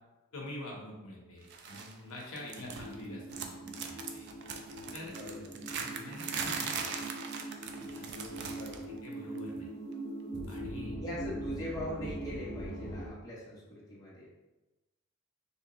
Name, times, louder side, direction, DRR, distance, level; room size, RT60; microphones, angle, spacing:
voice 1, 0.3-4.3 4.9-5.2 5.8-6.8 7.7-8.5 8.9-9.7 10.5-11.0, left 1 dB, 75° left, -2 dB, 0.8 m, -46 dB
sound 1, 1.5-1.9 2.2-3.0 3.3-8.9 9.1-9.4 10.5-10.6, right 6 dB, 50° right, 0.3 m, -40 dB
voice 2, 2.4-2.7 5.0-5.7 8.5-8.9 11.0-14.3, left 1 dB, 15° left, -7 dB, 0.8 m, -42 dB
sound 2, 2.6-13.1, right 1 dB, 80° right, 1.3 m, -42 dB
3.5 x 2.9 x 2.9 m, 1.1 s
head